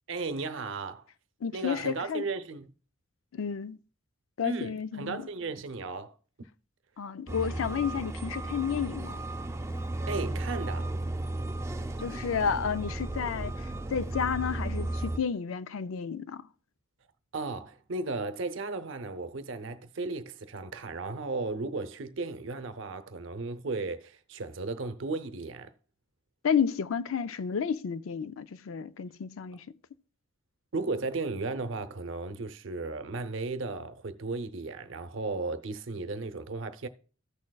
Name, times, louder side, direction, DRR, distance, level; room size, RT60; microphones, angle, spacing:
voice 1, 0.1-1.1 1.5-2.7 4.4-6.1 10.1-10.9 17.3-25.7 30.7-36.9, right 3 dB, 65° right, 0.7 m, -35 dB
voice 2, 1.4-2.2 3.3-3.8 4.4-5.3 7.0-9.2 12.0-16.4 26.4-29.6, left 7 dB, 80° left, 0.4 m, -31 dB
sound 1, 7.3-15.2, right 1 dB, 15° right, 0.4 m, -34 dB
14.5 x 6.4 x 2.3 m
head